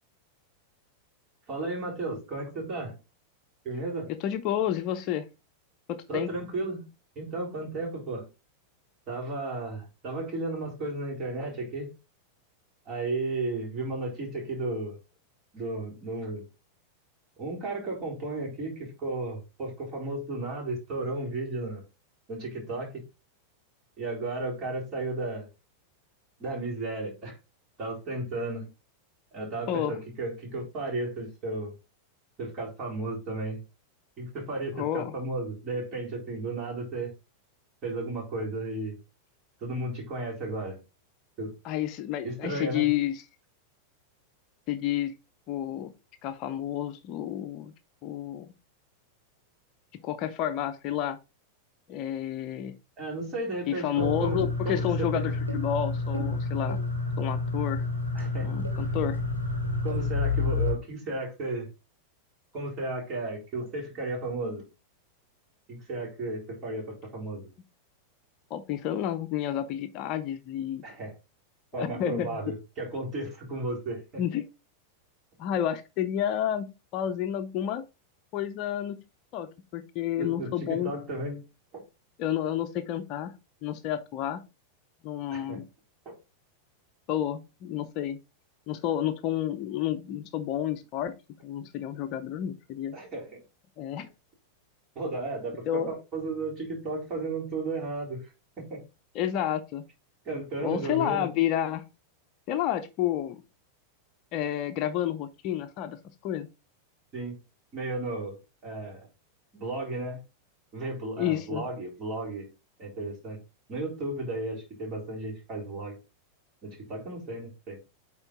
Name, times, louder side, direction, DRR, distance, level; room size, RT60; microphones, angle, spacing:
voice 1, 1.5-3.0 3.6-4.1 6.1-6.8 7.2-8.3 9.1-11.9 12.9-15.0 15.5-16.5 17.4-21.8 22.3-23.0 24.0-25.5 26.4-27.4 27.8-28.7 29.3-31.7 32.4-33.6 34.2-37.1 37.8-39.0 39.6-40.8 41.4-41.5 42.2-42.9 53.0-55.3 58.1-58.5 59.8-61.7 62.5-64.6 65.7-67.5 70.8-71.1 71.7-74.2 80.2-81.4 81.7-81.8 85.3-85.6 86.1-86.2 91.9-92.0 92.9-93.4 95.0-98.3 98.6-98.8 100.2-101.3 107.1-107.4 107.7-108.4 108.6-109.1 109.5-110.2 110.7-112.5 112.8-113.4 113.7-116.0 116.6-117.8, right 2 dB, 30° right, 3.8 m, -34 dB
voice 2, 4.2-5.3 5.9-6.3 29.7-30.0 34.8-35.2 41.6-43.1 44.7-45.1 45.5-45.9 46.2-47.7 48.0-48.5 50.0-51.2 51.9-52.8 53.7-56.8 57.2-57.8 58.4-59.2 68.5-70.8 71.8-72.3 74.2-74.4 75.4-77.8 78.3-79.0 79.3-80.9 82.2-83.3 83.6-84.4 85.0-85.7 87.1-88.2 88.7-91.2 91.4-92.9 93.8-94.1 95.7-95.9 99.1-99.8 100.6-101.8 102.5-103.4 104.3-106.0 106.2-106.5 111.2-111.6, left 11 dB, 40° left, 0.6 m, -30 dB
sound 1, 54.0-60.7, left 3 dB, 85° right, 2.5 m, -29 dB
8.9 x 3.8 x 3.8 m
figure-of-eight pair, 90°, 0 cm